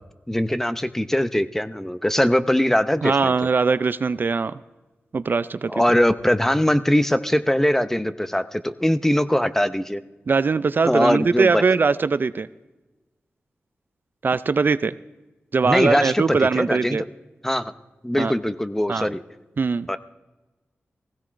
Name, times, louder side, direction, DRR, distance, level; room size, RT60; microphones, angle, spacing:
voice 1, 0.3-3.3 5.7-10.0 10.9-11.6 15.6-17.1 17.4-17.7 18.0-19.2 19.9-20.0, equal, 10° left, 11 dB, 0.5 m, -21 dB
voice 2, 3.0-4.5 5.1-5.7 10.3-12.5 14.2-14.9 15.5-17.0 18.2-18.3 18.9-19.1 19.6-19.9, right 4 dB, 50° right, 14 dB, 0.3 m, -21 dB
19.5 x 15.5 x 2.5 m, 1.1 s
wide cardioid pair, 75°, 4 cm